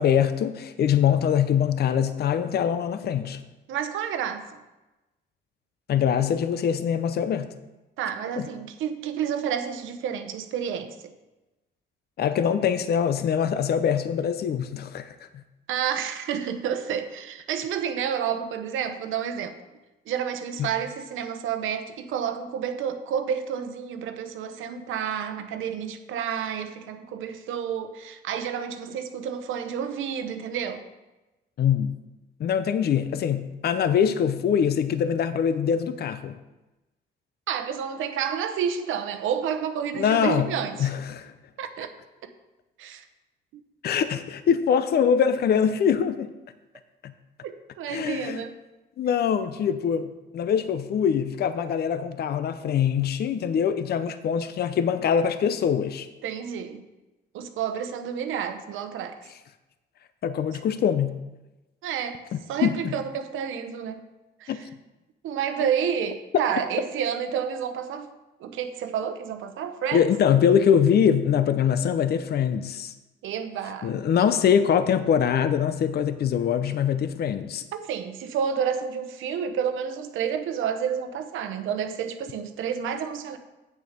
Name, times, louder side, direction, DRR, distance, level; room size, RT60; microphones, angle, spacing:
voice 1, 0.0-3.4 5.9-7.5 12.2-15.1 20.6-20.7 31.6-31.9 32.4-36.4 40.0-40.5 40.8-41.3 43.8-46.3 47.0-47.1 47.9-48.4 49.0-56.1 60.2-61.2 62.3-62.9 64.5-64.6 69.9-72.9 73.8-77.6, left 8 dB, 55° left, 11 dB, 0.6 m, -23 dB
voice 2, 3.7-4.6 8.0-11.1 15.7-19.6 20.1-30.8 37.5-40.9 41.6-41.9 42.8-43.1 47.4-48.5 56.2-56.8 57.3-59.2 60.5-60.6 61.8-62.2 62.5-64.0 64.4-64.7 65.2-68.1 68.4-70.1 73.2-74.3 77.7-83.4, right 8 dB, 85° right, 8 dB, 0.9 m, -30 dB
8.7 x 6.5 x 5.1 m, 1.1 s
cardioid pair, 90°, 20 cm